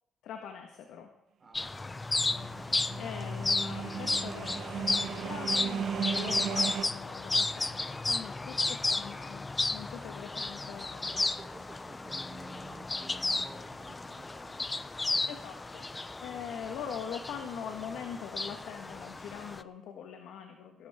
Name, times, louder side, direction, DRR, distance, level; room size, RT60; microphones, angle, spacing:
voice 1, 0.2-1.1 3.0-9.4 9.7-11.2 15.3-15.9 16.2-20.9, left 7 dB, 85° left, 4 dB, 1.5 m, -42 dB
voice 2, 1.4-1.7 11.0-15.3, right 3 dB, 30° right, 3 dB, 3.9 m, -53 dB
sound 1, 1.5-19.6, left 3 dB, 20° left, 0.6 m, -33 dB
sound 2, 2.2-6.9, right 8 dB, 70° right, 0.8 m, -36 dB
19.0 x 12.5 x 3.7 m, 0.80 s
cardioid pair, 90°, 0 cm